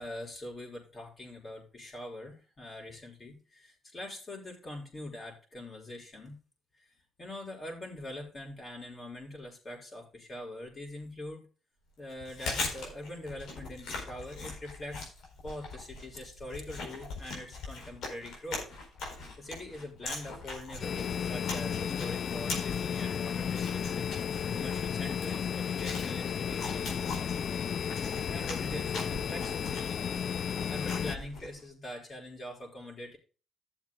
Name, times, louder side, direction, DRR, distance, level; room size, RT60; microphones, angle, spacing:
voice 1, 0.0-6.4 6.7-6.9 7.2-11.5 12.0-15.1 15.4-18.7 19.1-27.0 28.3-29.7 30.7-33.2, left 1 dB, 35° left, 0 dB, 5.5 m, -43 dB
Chewing mastication, 12.1-31.6, left 3 dB, 75° left, 4.2 m, -41 dB
sound 1, 20.8-31.2, left 8 dB, 55° left, 0.4 m, -33 dB
16.0 x 7.1 x 2.2 m, 0.34 s
cardioid pair, 90°, 0 cm